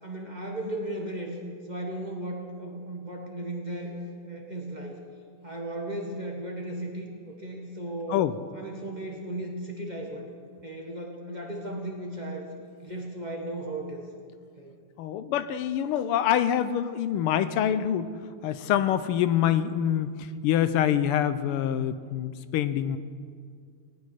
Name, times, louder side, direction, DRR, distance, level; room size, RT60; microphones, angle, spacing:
voice 1, 0.0-1.4 1.7-5.0 5.4-8.3 8.5-10.2 10.6-12.5 12.8-14.1 14.6-14.8, right 1 dB, 20° right, 0 dB, 1.4 m, -36 dB
voice 2, 15.0-18.1 18.4-23.0, left 10 dB, 90° left, 13 dB, 1.6 m, -25 dB
19.0 x 6.4 x 10.0 m, 2.1 s
omnidirectional pair, 2.4 m